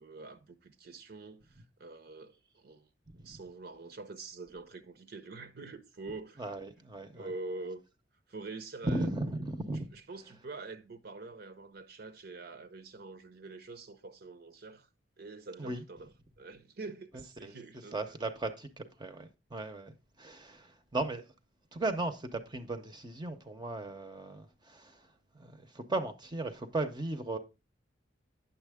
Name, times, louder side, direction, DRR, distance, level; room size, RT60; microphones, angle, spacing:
voice 1, 0.0-2.9 3.1-6.5 7.1-7.8 8.3-9.1 9.9-14.9 15.2-18.2, right 3 dB, 60° right, 0.7 m, -45 dB
voice 2, 6.4-7.3 8.8-9.9 15.6-15.8 17.4-17.5 17.9-21.2 21.7-25.0 25.3-27.4, right 2 dB, 25° right, 0.7 m, -36 dB
9.1 x 7.0 x 3.5 m
head